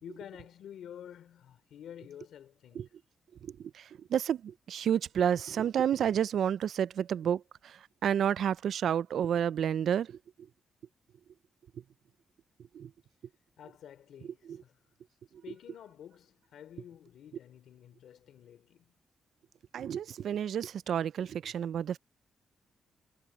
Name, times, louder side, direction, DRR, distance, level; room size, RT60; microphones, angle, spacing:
voice 1, 0.0-2.9 13.6-14.8 15.4-18.9, left 9 dB, 80° left, 3.1 m, -50 dB
voice 2, 3.4-10.1 12.7-12.9 19.7-22.0, right 9 dB, 65° right, 0.3 m, -30 dB
wide cardioid pair, 170°, 0 cm